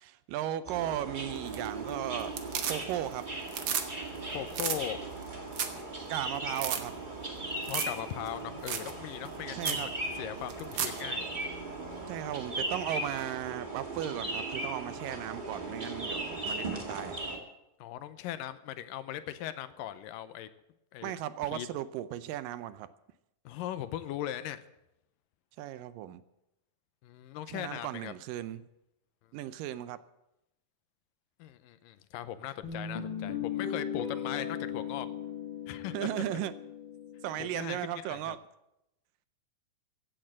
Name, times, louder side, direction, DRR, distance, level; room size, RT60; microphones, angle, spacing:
voice 1, 0.0-2.3 2.7-3.3 6.1-6.9 9.5-9.9 12.1-17.2 21.0-22.9 25.6-26.2 27.5-28.7 29.3-30.0 35.9-36.5 37.2-38.4, right 12 dB, 80° right, 14 dB, 2.2 m, -36 dB
sound 1, 0.6-17.4, right 2 dB, 20° right, 1.6 m, -38 dB
sound 2, 1.4-1.9 2.2-3.1 3.4-3.9 4.2-4.3 4.5-4.8 5.2-5.3 5.5-5.8 6.1-6.2 6.5-6.8 7.6-8.0 8.3-8.4 8.7-8.9 9.3-9.4 9.6-9.8 10.5-11.0 13.2-13.3, right 8 dB, 65° right, 1.4 m, -33 dB
voice 2, 4.3-5.0 7.7-11.2 17.8-20.5 20.9-21.1 21.5-21.7 23.5-24.6 27.0-28.1 31.4-35.1 35.7-36.2 37.4-38.4, left 12 dB, 80° left, 12 dB, 2.3 m, -39 dB
Guitar, 32.6-37.7, left 8 dB, 40° left, 2.0 m, -37 dB
16.0 x 8.8 x 7.5 m, 0.86 s
omnidirectional pair, 4.1 m